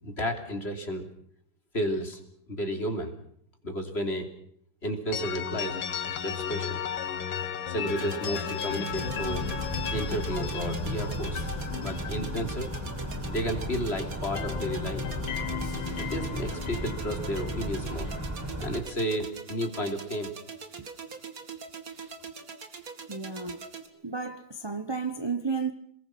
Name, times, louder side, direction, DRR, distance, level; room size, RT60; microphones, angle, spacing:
voice 1, 0.0-1.1 1.7-2.2 2.5-3.1 3.6-4.3 4.8-5.8 6.2-6.8 7.7-9.4 9.9-11.4 11.8-12.7 13.3-15.1 16.0-18.1 18.6-20.3, equal, 30° left, 3.3 m, -32 dB
sound 1, 5.1-13.9 14.1-18.3, left 8 dB, 75° left, 2.0 m, -35 dB
sound 2, 7.9-23.9, right 5 dB, 45° right, 2.4 m, -43 dB
sound 3, 8.9-18.8, equal, 5° right, 4.9 m, -35 dB
voice 2, 23.1-23.6 24.0-25.7, right 5 dB, 25° right, 0.6 m, -32 dB
28.0 x 21.0 x 6.1 m
omnidirectional pair, 2.1 m